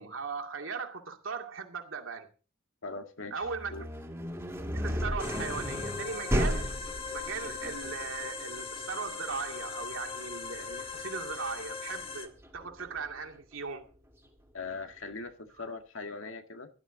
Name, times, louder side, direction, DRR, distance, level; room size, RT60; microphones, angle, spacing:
voice 1, 0.0-2.3 3.3-3.8 4.7-6.7 7.1-13.9, right 5 dB, 75° right, 2.4 m, -38 dB
voice 2, 2.8-3.5 3.7-3.9 14.5-16.7, left 3 dB, 75° left, 1.9 m, -40 dB
sound 1, 3.4-13.2, equal, 10° right, 2.4 m, -35 dB
sound 2, 5.2-12.3, left 5 dB, 25° left, 1.5 m, -40 dB
17.0 x 12.0 x 3.9 m
head